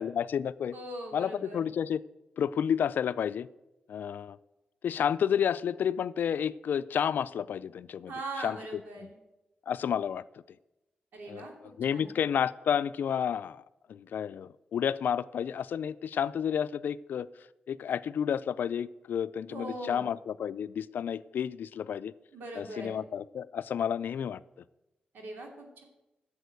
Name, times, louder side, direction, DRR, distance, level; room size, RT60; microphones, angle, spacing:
voice 1, 0.0-0.8 1.1-2.0 2.4-3.5 3.9-4.4 4.8-8.1 8.4-8.6 9.0-9.1 9.7-10.2 11.3-11.5 11.8-13.6 13.9-17.3 17.7-22.1 22.5-24.4, left 8 dB, 80° left, 16 dB, 0.4 m, -31 dB
voice 2, 0.7-1.7 8.1-9.1 11.1-12.1 19.5-20.1 22.3-23.0 25.1-25.8, right 2 dB, 90° right, 1 dB, 2.7 m, -41 dB
11.0 x 7.1 x 8.1 m, 0.98 s
cardioid pair, 80°, 3 cm